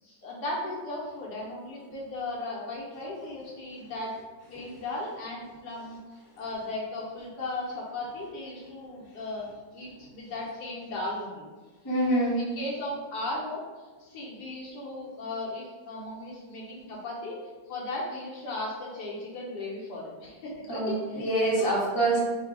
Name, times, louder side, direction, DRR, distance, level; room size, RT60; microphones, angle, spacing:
voice 1, 0.0-4.1 4.5-6.0 6.4-9.5 9.7-11.5 12.4-17.4 17.7-21.2 21.6-21.7, left 2 dB, 65° left, -4 dB, 1.3 m, -36 dB
voice 2, 11.8-12.4 20.7-22.2, right 1 dB, 20° left, -6 dB, 0.7 m, -25 dB
4.0 x 2.3 x 4.6 m, 1.3 s
omnidirectional pair, 2.1 m